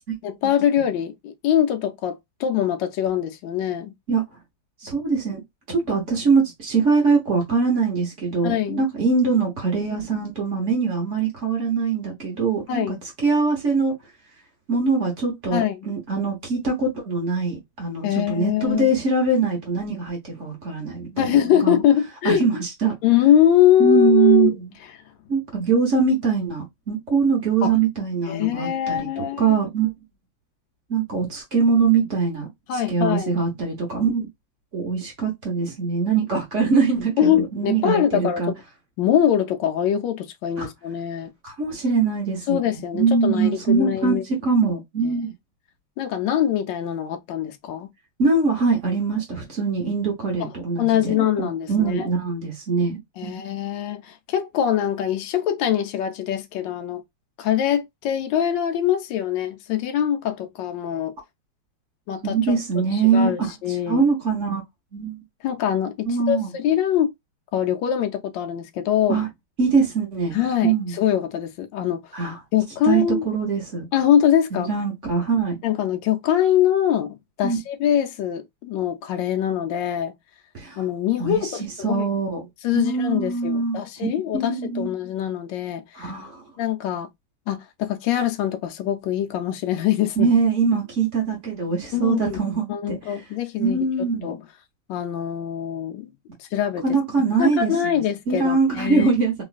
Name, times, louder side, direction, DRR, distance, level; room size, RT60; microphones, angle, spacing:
voice 1, 0.2-3.9 8.4-8.8 12.7-13.0 15.5-15.8 18.0-18.9 21.2-22.5 23.0-24.5 27.6-27.8 28.3-29.5 32.7-33.3 37.2-38.6 39.0-41.3 42.5-44.2 46.0-47.9 50.4-50.5 50.8-52.1 53.2-57.0 57.4-61.1 62.1-64.1 65.4-67.1 67.5-69.2 70.3-72.0 72.5-73.3 73.9-74.7 75.6-80.1 80.8-82.0 82.6-86.1 86.6-87.1 87.5-90.3 91.9-92.4 92.7-94.4 94.9-96.1 96.4-96.8 97.4-99.1, left 10 dB, 80° left, 1.2 m, -23 dB
voice 2, 4.8-5.4 5.7-12.9 13.2-13.9 14.7-21.7 22.2-22.9 23.8-24.7 25.3-29.9 30.9-32.5 32.9-34.3 34.7-38.5 40.6-40.7 41.4-42.6 42.9-45.3 48.2-53.4 62.2-63.5 63.9-64.6 64.9-65.2 66.0-66.5 69.1-69.3 69.6-70.4 70.6-70.9 72.1-72.4 72.8-73.8 74.5-75.6 77.4-77.6 80.5-80.8 81.2-81.5 81.8-82.5 82.7-84.1 84.3-84.9 85.9-86.4 90.2-93.0 93.6-94.3 96.8-98.0 98.3-99.3, right 4 dB, 45° right, 1.2 m, -22 dB
3.1 x 3.0 x 2.4 m
omnidirectional pair, 2.0 m